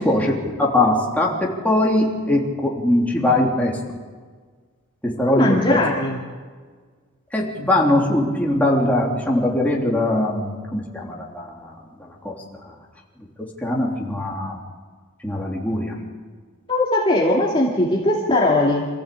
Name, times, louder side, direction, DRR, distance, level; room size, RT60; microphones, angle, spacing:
voice 1, 0.0-3.8 5.0-5.8 7.3-11.7 12.2-12.3 13.6-14.6 15.2-16.0, left 1 dB, 5° left, -3 dB, 3.2 m, -21 dB
voice 2, 5.2-6.2 16.7-18.9, left 2 dB, 25° left, -4 dB, 2.4 m, -19 dB
27.0 x 15.5 x 8.5 m, 1.6 s
head